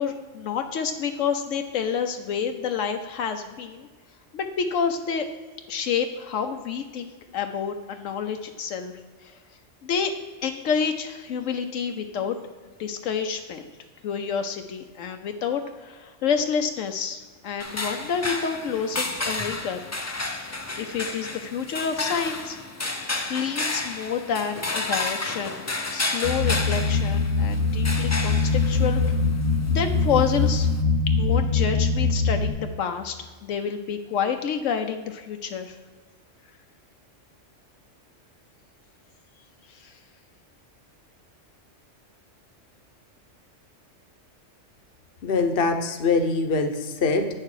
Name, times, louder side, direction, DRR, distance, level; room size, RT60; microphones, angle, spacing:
voice 1, 0.0-3.9 4.3-5.3 5.7-8.9 9.2-9.4 9.8-10.1 10.4-12.4 12.8-13.7 14.0-19.8 20.8-22.6 23.3-29.0 29.7-30.7 31.2-33.2 33.4-35.8 39.7-39.9, left 7 dB, 80° left, 6 dB, 1.0 m, -28 dB
sound 1, 17.6-30.8, left 2 dB, 25° left, 0.3 m, -32 dB
sound 2, 26.2-32.5, left 4 dB, 55° right, 1.6 m, -22 dB
voice 2, 45.2-47.3, left 4 dB, 50° left, 6 dB, 1.0 m, -23 dB
9.4 x 6.7 x 4.8 m, 1.4 s
omnidirectional pair, 1.3 m